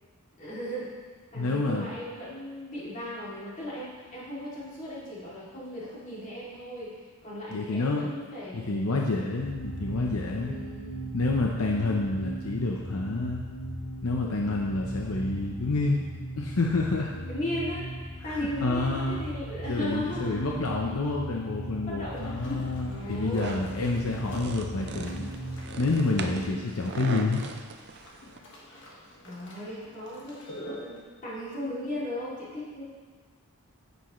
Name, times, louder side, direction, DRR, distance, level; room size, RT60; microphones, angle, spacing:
voice 1, 0.4-0.9 1.3-6.9 7.2-9.0 10.3-11.0 17.3-17.9 18.2-20.4 21.8-22.4 22.7-23.6 26.2-26.7 29.2-30.4 30.8-32.8, equal, 35° left, -8 dB, 2.7 m, -37 dB
voice 2, 1.3-1.9 7.5-8.1 8.5-10.6 11.1-13.4 14.0-16.0 16.4-17.1 18.3-19.2 19.6-25.2 25.8-27.4, left 3 dB, 80° left, -1 dB, 0.7 m, -28 dB
sound 1, 9.4-26.5, right 1 dB, 20° left, 1.4 m, -38 dB
sound 2, 22.1-31.0, left 1 dB, 55° left, 1.5 m, -45 dB
sound 3, 23.4-28.4, right 4 dB, 50° right, 0.5 m, -40 dB
10.0 x 8.2 x 3.1 m, 1.5 s
head